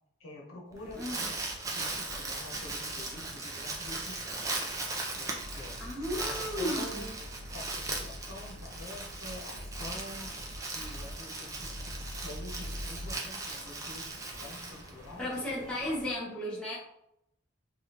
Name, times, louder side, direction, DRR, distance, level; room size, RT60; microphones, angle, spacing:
voice 1, 0.2-1.4 1.7-4.6 5.1-7.2 7.5-10.3 10.7-11.9 12.2-14.1 14.4-16.0, left 1 dB, 90° left, -2 dB, 0.8 m, -47 dB
Crumpling crinkling, 0.7-15.3, right 3 dB, 15° right, 0.3 m, -38 dB
sound 1, 0.7-16.2, equal, 40° right, 1.0 m, -51 dB
voice 2, 1.0-1.3 5.8-7.1 15.2-16.8, left 1 dB, 5° left, -7 dB, 0.8 m, -34 dB
sound 2, 5.4-13.2, equal, 80° right, 0.6 m, -44 dB
3.3 x 2.3 x 2.9 m, 0.81 s
head